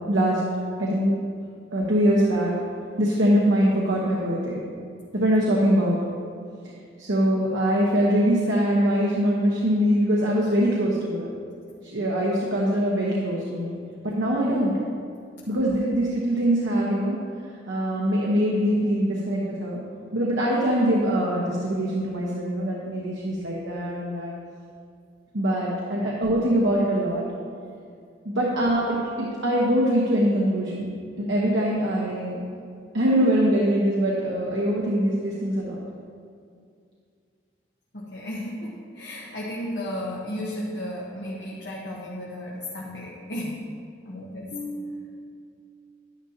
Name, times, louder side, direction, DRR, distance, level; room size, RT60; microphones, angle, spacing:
voice 1, 0.1-0.4 0.8-1.2 1.7-2.6 3.0-4.6 5.1-6.0 7.0-11.3 11.8-13.7 14.0-14.8 15.5-17.2 17.7-19.8 20.1-24.3 25.3-27.3 28.2-30.9 31.2-32.4 32.9-35.8, equal, 90° right, -4 dB, 1.1 m, -23 dB
voice 2, 37.9-43.6 44.0-45.2, left 1 dB, 75° left, -5 dB, 1.2 m, -34 dB
11.0 x 10.0 x 2.9 m, 2.3 s
head